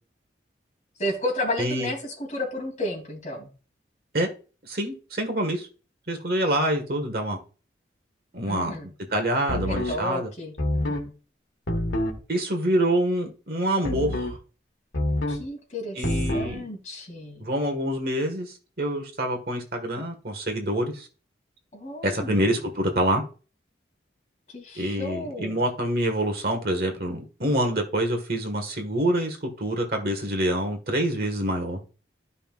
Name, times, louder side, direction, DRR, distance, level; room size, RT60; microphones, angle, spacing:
voice 1, 1.0-3.5 8.5-8.9 9.5-11.1 15.3-16.0 16.3-17.5 21.7-22.5 24.5-25.6, left 1 dB, 40° left, 3.0 m, -32 dB
voice 2, 1.6-1.9 4.1-4.3 4.6-5.7 6.1-7.4 8.3-8.7 9.1-10.3 12.3-14.4 15.9-16.6 17.4-21.1 22.0-23.2 24.7-31.8, right 1 dB, 55° right, 1.7 m, -26 dB
sound 1, 9.5-10.0 10.6-11.1 11.7-12.2 13.8-14.4 14.9-15.5 16.0-16.5, left 1 dB, 85° left, 1.6 m, -26 dB
13.0 x 5.6 x 2.5 m
head